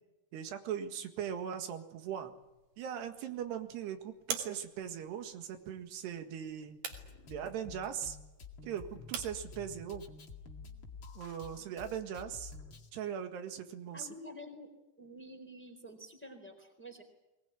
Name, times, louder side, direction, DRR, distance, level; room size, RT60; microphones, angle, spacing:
voice 1, 0.3-2.3 2.8-6.8 7.3-8.2 8.6-10.0 11.2-12.5 12.9-14.1, right 9 dB, 90° right, 7 dB, 3.9 m, -40 dB
sound 1, 2.2-11.4, right 7 dB, 60° right, 4.2 m, -48 dB
Drum kit, 6.9-12.9, left 4 dB, 35° left, 2.2 m, -50 dB
voice 2, 13.9-14.7 15.0-17.0, equal, 5° left, 5 dB, 3.4 m, -49 dB
22.5 x 20.0 x 9.9 m, 0.99 s
omnidirectional pair, 4.7 m